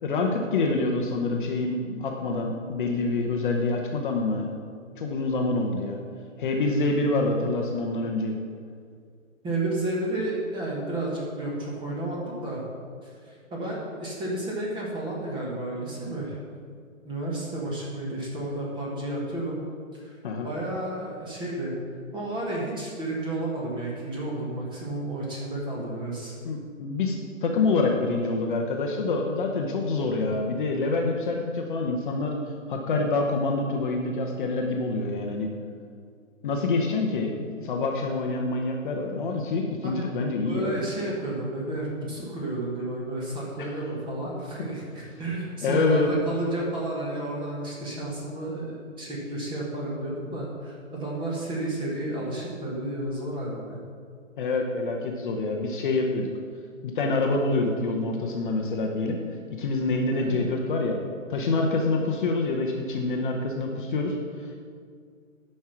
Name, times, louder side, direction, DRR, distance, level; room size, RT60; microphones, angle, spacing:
voice 1, 0.0-4.5 5.0-6.0 6.4-8.4 20.2-20.5 26.4-32.4 32.7-35.5 36.4-40.7 43.6-43.8 45.6-46.3 54.4-56.3 56.8-59.2 59.5-61.0 61.3-64.7, left 3 dB, 40° left, 1 dB, 0.9 m, -26 dB
voice 2, 9.4-12.6 13.0-16.4 17.0-19.6 19.9-20.2 20.4-21.7 22.1-26.4 39.8-40.0 40.4-53.8 60.1-60.4, right 1 dB, 10° right, -4 dB, 1.6 m, -32 dB
9.5 x 5.5 x 5.9 m, 2.1 s
figure-of-eight pair, 135°, 40 cm